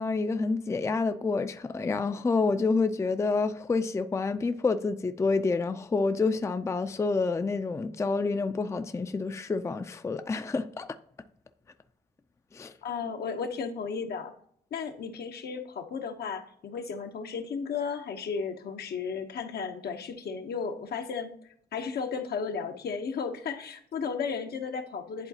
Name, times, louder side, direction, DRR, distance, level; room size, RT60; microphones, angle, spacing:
voice 1, 0.0-10.9 12.5-12.7, left 4 dB, 15° left, 0.4 m, -28 dB
voice 2, 12.8-14.3 14.7-21.3 21.7-25.3, left 5 dB, 70° left, 0.9 m, -34 dB
10.5 x 3.9 x 2.8 m
cardioid pair, 95°, 17 cm